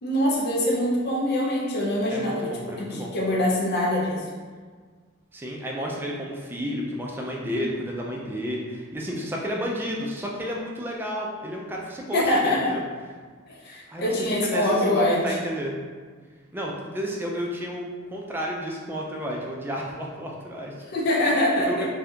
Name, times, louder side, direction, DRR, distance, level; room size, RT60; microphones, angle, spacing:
voice 1, 0.0-2.4 2.8-4.3 12.1-12.7 13.5-15.4 20.9-21.9, left 1 dB, 50° left, -4 dB, 0.5 m, -24 dB
voice 2, 2.1-3.1 5.3-12.8 13.9-15.8 16.5-20.7 21.2-21.9, equal, 10° right, -2 dB, 0.3 m, -31 dB
2.6 x 2.3 x 3.5 m, 1.5 s
head